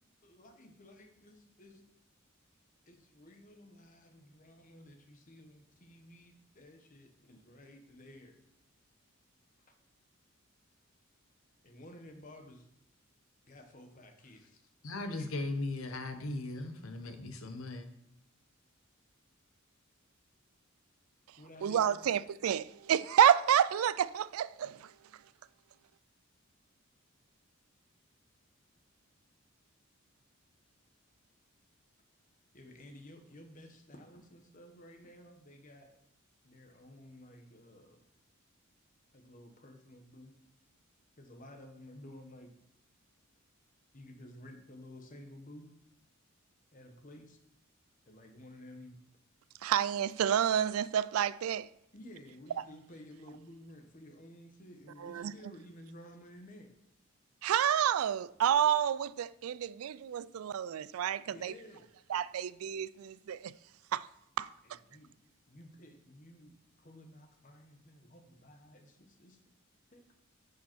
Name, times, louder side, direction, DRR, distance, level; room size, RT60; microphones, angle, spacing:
voice 1, 0.2-1.8 2.9-8.4 11.6-12.7 13.4-14.6 15.1-15.3 21.4-22.1 32.5-35.9 36.4-38.1 39.1-40.3 41.2-42.5 43.9-45.7 46.7-47.4 48.1-49.0 51.9-56.7 61.3-61.9 64.6-65.1 65.5-69.4 69.9-70.1, left 1 dB, 40° left, 1.2 m, -53 dB
voice 2, 14.8-17.9, left 2 dB, 75° left, 1.0 m, -38 dB
voice 3, 21.6-24.9 49.6-51.7 55.0-55.3 57.4-61.5 62.1-63.5 63.9-64.1 64.4-64.8, right 9 dB, 85° right, 0.3 m, -29 dB
10.0 x 5.3 x 4.5 m
head